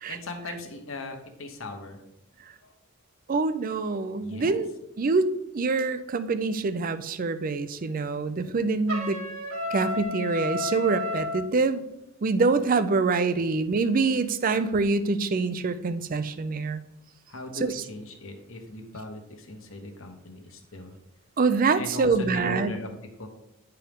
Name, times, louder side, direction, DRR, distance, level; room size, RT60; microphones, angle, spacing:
voice 1, 0.1-2.0 2.6-2.7 4.2-4.6 17.3-20.9 21.8-22.9 23.2-23.3, left 2 dB, 65° left, 5 dB, 1.2 m, -38 dB
voice 2, 3.3-9.2 9.7-11.8 12.2-16.8 17.6-17.8 21.4-22.7, right 4 dB, 40° right, 13 dB, 0.4 m, -25 dB
Trumpet, 8.9-11.4, left 2 dB, 85° right, 2.1 m, -31 dB
10.0 x 4.5 x 3.6 m, 0.88 s
head